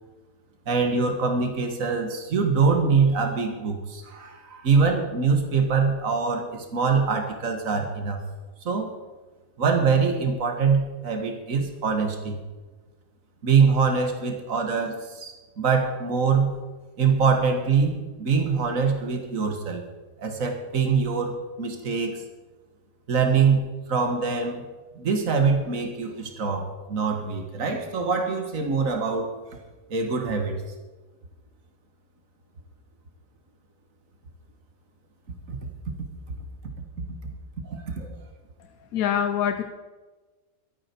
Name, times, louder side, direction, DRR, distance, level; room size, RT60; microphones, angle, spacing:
voice 1, 0.7-8.2 8.7-8.9 9.6-12.4 13.4-16.5 17.0-19.8 20.2-22.2 23.1-23.6 23.9-24.7 25.0-29.3 29.9-30.6 35.5-35.6 36.6-36.7 37.6-38.1, right 5 dB, 70° right, 4 dB, 2.0 m, -24 dB
voice 2, 38.9-39.6, left 9 dB, 90° left, 8 dB, 1.2 m, -24 dB
23.5 x 8.8 x 4.5 m, 1.2 s
omnidirectional pair, 1.5 m